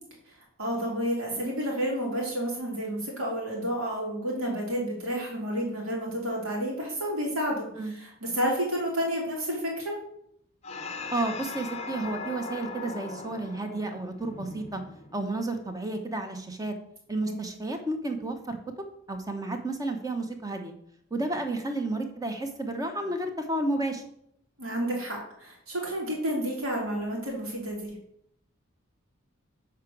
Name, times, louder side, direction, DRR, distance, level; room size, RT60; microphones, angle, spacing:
voice 1, 0.6-10.0 17.2-17.3 24.6-28.0, equal, 85° right, -2 dB, 2.9 m, -30 dB
sound 1, 10.6-15.4, left 4 dB, 30° left, 0.6 m, -39 dB
voice 2, 11.1-14.8 15.1-16.7 17.1-18.6 19.1-20.7 21.1-24.0, right 2 dB, 15° right, 5 dB, 0.8 m, -31 dB
6.5 x 4.8 x 6.0 m, 0.73 s
head